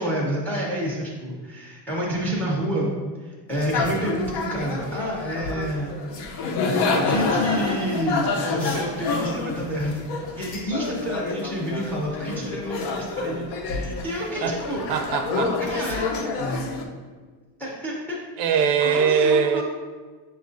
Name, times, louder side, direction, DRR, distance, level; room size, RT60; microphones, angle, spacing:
voice 1, 0.0-2.9 3.2-5.9 6.8-14.8 15.6-16.3 17.6-18.2 18.8-19.6, equal, 5° left, -4 dB, 0.5 m, -29 dB
sound 1, 3.5-16.8, left 3 dB, 60° left, 0.6 m, -28 dB
voice 2, 14.9-15.6 18.4-19.6, right 6 dB, 65° right, 5 dB, 0.6 m, -21 dB
6.7 x 2.3 x 2.5 m, 1.4 s
cardioid pair, 150°, 47 cm